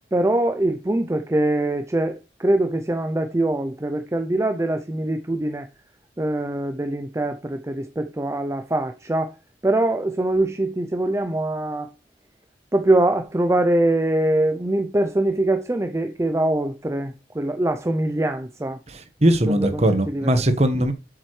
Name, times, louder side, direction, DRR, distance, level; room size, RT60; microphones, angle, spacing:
voice 1, 0.1-5.7 6.2-9.4 9.6-11.9 12.7-18.8 19.5-20.4, right 1 dB, 15° right, 0.5 m, -23 dB
voice 2, 18.9-20.9, right 1 dB, 40° right, 1.2 m, -20 dB
7.7 x 7.2 x 3.2 m
head